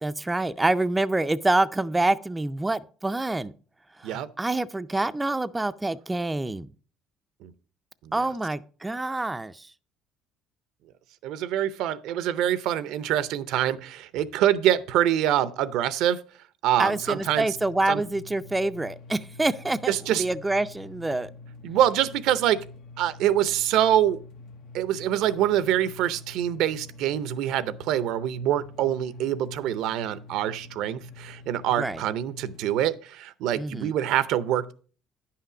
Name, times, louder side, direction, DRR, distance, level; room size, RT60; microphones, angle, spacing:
voice 1, 0.0-3.5 4.0-6.7 8.1-9.7 16.8-21.3 31.8-32.0 33.6-33.9, right 2 dB, 10° right, 0.4 m, -26 dB
voice 2, 11.2-16.2 16.6-17.6 17.9-18.0 19.9-20.3 21.6-22.6 23.0-24.2 24.7-34.7, right 11 dB, 75° right, 0.6 m, -25 dB
sound 1, 17.0-33.0, left 3 dB, 70° left, 0.9 m, -46 dB
9.8 x 5.8 x 4.8 m
cardioid pair, 105°, 0 cm